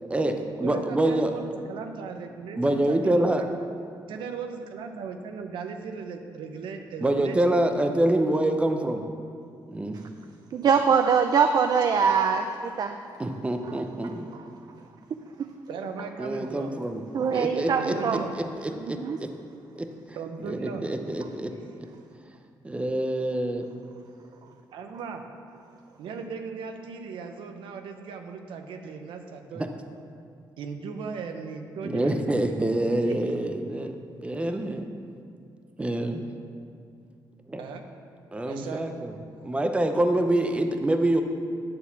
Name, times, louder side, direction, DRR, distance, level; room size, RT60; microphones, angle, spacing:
voice 1, 0.0-1.3 2.5-3.4 7.0-9.0 9.7-10.0 13.2-14.3 16.2-17.0 17.3-19.3 19.8-19.9 20.4-21.5 21.8-21.9 22.6-23.7 29.5-29.7 31.8-33.9 34.2-34.9 35.8-36.3 37.5-37.6 38.3-39.1 39.4-41.2, right 1 dB, 15° right, 5 dB, 0.7 m, -26 dB
voice 2, 0.6-3.5 4.1-7.6 15.7-16.8 17.6-18.3 20.1-20.9 21.5-21.8 24.7-25.2 26.0-29.7 30.6-32.2 33.1-33.3 37.6-37.8 38.5-38.8, right 5 dB, 85° right, 5 dB, 0.8 m, -37 dB
voice 3, 10.5-12.9 17.1-18.2 19.0-19.2, right 6 dB, 50° right, 6 dB, 0.4 m, -22 dB
9.8 x 4.1 x 6.9 m, 2.4 s
cardioid pair, 90°, 8 cm